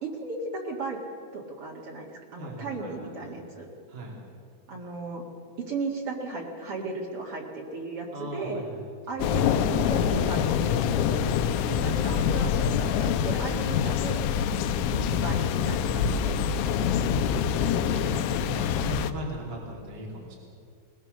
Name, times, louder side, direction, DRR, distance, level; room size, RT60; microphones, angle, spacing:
voice 1, 0.0-1.0 1.3-3.7 4.7-5.2 5.6-8.6 9.1-14.3 14.9-16.3, right 3 dB, 70° right, -2 dB, 1.3 m, -36 dB
voice 2, 2.3-3.4 3.9-4.2 8.1-9.0 14.8-15.3 16.8-20.4, equal, 30° right, -2 dB, 2.0 m, -39 dB
sound 1, 9.2-19.1, left 8 dB, 85° left, 3.4 m, -25 dB
20.5 x 20.5 x 6.5 m, 2.3 s
omnidirectional pair, 6.0 m